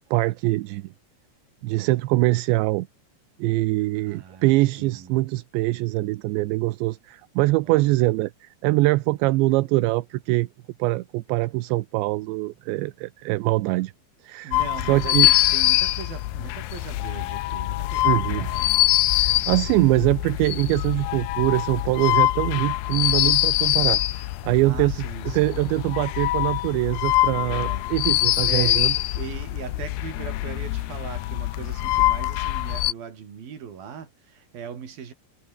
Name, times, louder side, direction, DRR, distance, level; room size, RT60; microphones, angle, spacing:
voice 1, 0.1-0.8 1.6-2.9 3.4-10.5 10.8-13.9 14.2-14.6 14.9-15.3 18.0-18.5 19.2-25.0 25.3-28.9, right 20 dB, 80° right, 3.0 m, -23 dB
voice 2, 4.0-5.2 7.6-7.9 14.4-18.9 19.3-20.0 24.6-25.6 27.3-27.9 28.5-28.9 29.1-35.1, right 7 dB, 55° right, 5.1 m, -39 dB
sound 1, 14.5-32.9, left 16 dB, 75° left, 2.5 m, -24 dB
omnidirectional pair, 5.4 m